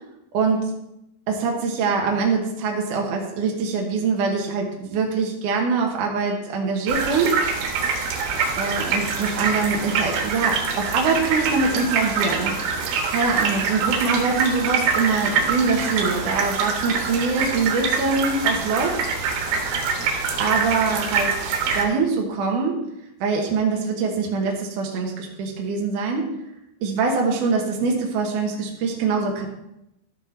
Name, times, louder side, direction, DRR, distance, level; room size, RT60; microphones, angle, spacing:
voice 1, 0.3-0.7 1.3-7.4 8.6-12.5 13.1-19.0 19.3-19.4 20.4-21.4 21.7-22.8 23.2-26.3 26.8-29.5, right 4 dB, 65° right, 0 dB, 2.2 m, -23 dB
sound 1, 6.9-21.8, right 5 dB, 80° right, 3.4 m, -25 dB
13.0 x 6.3 x 4.3 m, 0.86 s
omnidirectional pair, 4.9 m